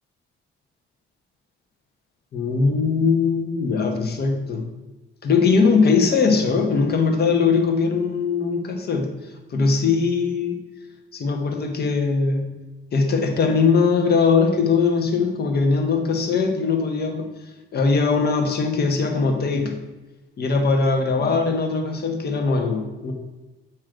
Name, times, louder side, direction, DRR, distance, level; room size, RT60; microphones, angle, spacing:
voice 1, 2.3-4.6 5.2-10.6 11.1-12.5 12.9-17.3 17.7-19.8 20.4-23.1, left 4 dB, 55° left, 4 dB, 1.2 m, -20 dB
7.7 x 3.1 x 5.0 m, 1.1 s
cardioid pair, 90°, 20 cm